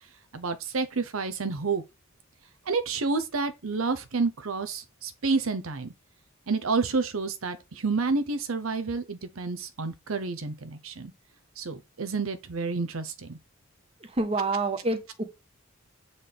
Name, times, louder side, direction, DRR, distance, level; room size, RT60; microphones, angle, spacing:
voice 1, 0.3-1.8 2.7-5.9 6.5-11.1 11.6-13.4, right 4 dB, 75° right, 0.7 m, -29 dB
voice 2, 14.0-15.2, right 2 dB, 30° right, 1.1 m, -28 dB
7.5 x 4.0 x 3.4 m
head